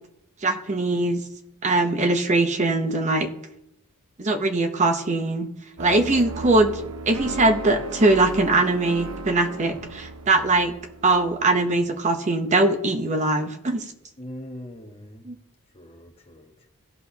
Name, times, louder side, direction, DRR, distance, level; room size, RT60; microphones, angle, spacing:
voice 1, 0.4-1.2 1.6-3.3 4.2-5.5 5.8-10.7 11.0-13.8 15.3-15.4, right 2 dB, 35° right, 0.7 m, -21 dB
sound 1, 5.8-11.9, right 3 dB, 90° right, 1.0 m, -36 dB
voice 2, 14.2-15.3 15.7-16.7, left 1 dB, 30° left, 1.1 m, -41 dB
16.5 x 6.2 x 2.8 m
head